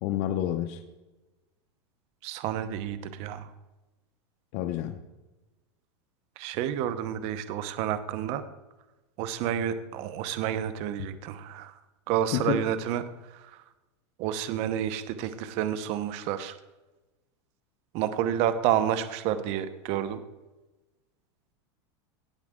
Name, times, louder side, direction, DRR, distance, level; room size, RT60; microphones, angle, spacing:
voice 1, 0.0-0.8 4.5-5.0 12.3-12.6, left 11 dB, 50° left, 7 dB, 0.8 m, -28 dB
voice 2, 2.2-3.5 6.4-8.4 9.2-11.8 12.1-13.0 13.3-13.6 14.2-16.6 17.9-20.2, right 10 dB, 45° right, 11 dB, 0.9 m, -30 dB
17.5 x 7.2 x 3.7 m, 1.1 s
supercardioid pair, 150°, 15 cm